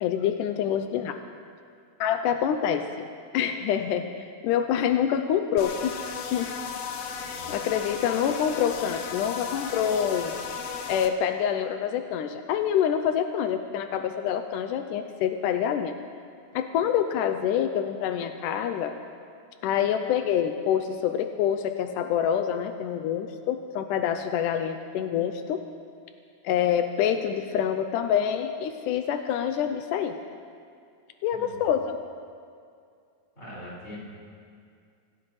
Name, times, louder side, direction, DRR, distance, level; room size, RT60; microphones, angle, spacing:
voice 1, 0.0-1.2 2.0-3.1 3.3-4.1 4.4-6.0 6.3-6.5 7.5-10.3 10.9-15.9 16.5-18.9 19.6-25.6 26.4-30.1 31.2-32.0, left 9 dB, 85° left, 7 dB, 2.2 m, -26 dB
sound 1, 5.6-11.1, left 6 dB, 65° left, 1.7 m, -35 dB
voice 2, 33.4-34.0, equal, 20° left, -7 dB, 5.5 m, -42 dB
25.5 x 16.5 x 3.2 m, 2.3 s
omnidirectional pair, 3.6 m